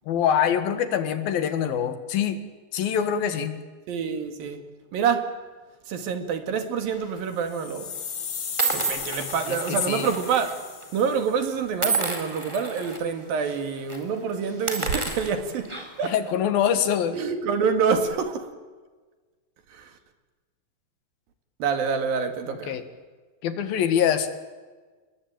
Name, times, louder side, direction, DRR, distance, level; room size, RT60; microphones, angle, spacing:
voice 1, 0.1-2.4 2.7-3.6 9.7-10.1 16.0-17.2 22.7-22.8 23.4-24.3, left 8 dB, 75° left, 3.6 m, -24 dB
voice 2, 3.9-5.3 5.9-7.9 8.7-10.6 10.9-16.1 17.1-18.5 19.7-19.9 21.6-22.8, right 6 dB, 70° right, 3.9 m, -27 dB
sound 1, 6.9-7.2 7.9-8.0 8.6-10.5 10.8-11.0 11.8-13.0 13.4-13.6 13.9-14.0 14.5-16.1, right 3 dB, 10° right, 3.4 m, -30 dB
sound 2, 7.3-11.5, left 6 dB, 45° left, 3.2 m, -36 dB
30.0 x 21.0 x 9.0 m
omnidirectional pair, 4.3 m